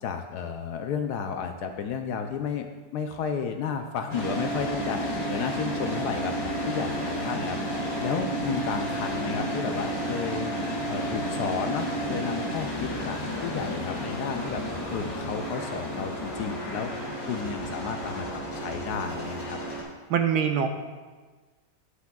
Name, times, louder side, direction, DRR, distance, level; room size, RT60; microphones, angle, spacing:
voice 1, 0.0-2.7 2.9-10.5 10.9-14.6 14.9-16.9 17.2-19.6, left 6 dB, 70° left, 6 dB, 1.0 m, -32 dB
sound 1, 4.1-19.8, right 1 dB, 35° left, 1.7 m, -31 dB
voice 2, 20.1-20.7, right 8 dB, 75° right, 6 dB, 1.1 m, -23 dB
17.5 x 5.9 x 2.3 m, 1.3 s
omnidirectional pair, 1.9 m